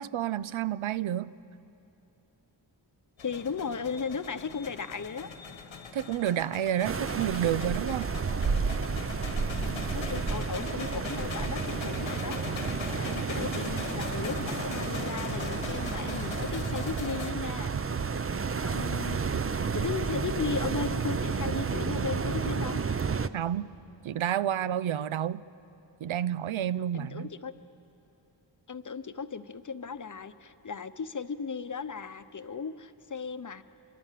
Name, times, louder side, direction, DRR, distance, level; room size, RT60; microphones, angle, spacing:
voice 1, 0.0-1.3 5.9-8.1 23.3-23.7 24.0-25.4 26.0-27.3, right 10 dB, 90° right, 0.6 m, -30 dB
sound 1, 3.2-17.3, left 5 dB, 80° left, 1.3 m, -40 dB
voice 2, 3.2-5.3 9.5-17.8 18.3-19.3 19.7-22.8 26.9-27.5 28.7-33.6, left 5 dB, 40° left, 0.8 m, -36 dB
sound 2, 6.8-23.3, right 5 dB, 30° right, 0.5 m, -31 dB
26.0 x 23.5 x 7.5 m
wide cardioid pair, 125°, 46 cm